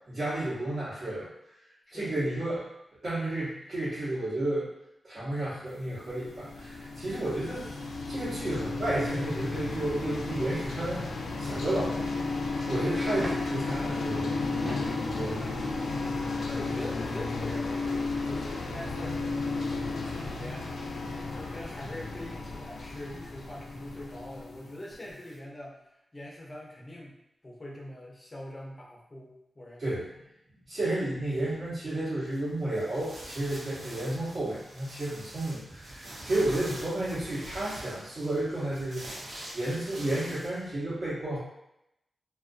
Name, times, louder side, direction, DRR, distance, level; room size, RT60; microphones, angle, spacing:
voice 1, 0.1-1.3 1.9-2.7 3.0-4.7 5.0-7.7 8.1-11.0 11.4-12.1 12.7-15.5 29.8-30.1 30.7-39.1 39.5-41.4, right 1 dB, 50° right, -12 dB, 1.0 m, -32 dB
sound 1, 6.0-25.0, left 3 dB, 80° left, 0.3 m, -33 dB
sound 2, 13.1-13.6 14.5-15.0 16.3-16.4 18.2-18.3 18.5-18.6, right 1 dB, 25° right, 0.4 m, -38 dB
voice 2, 15.4-15.8 16.4-20.8 21.3-25.8 26.1-27.2 27.4-30.0, left 1 dB, 20° left, -3 dB, 0.6 m, -43 dB
sound 3, 32.2-40.7, right 1 dB, 65° right, 0.6 m, -44 dB
2.4 x 2.1 x 2.5 m, 0.84 s
wide cardioid pair, 140°, 0 cm